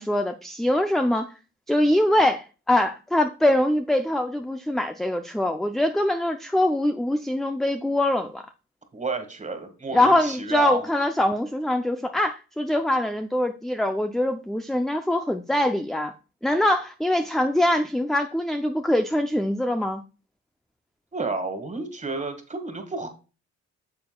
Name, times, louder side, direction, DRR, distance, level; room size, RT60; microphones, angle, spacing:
voice 1, 0.0-1.3 1.7-8.4 9.9-16.1 16.4-20.0, left 1 dB, ahead, 6 dB, 0.5 m, -23 dB
voice 2, 8.9-10.9 21.1-23.1, right 3 dB, 25° right, 7 dB, 1.8 m, -31 dB
9.5 x 6.8 x 2.3 m, 0.33 s
cardioid pair, 90°, 30 cm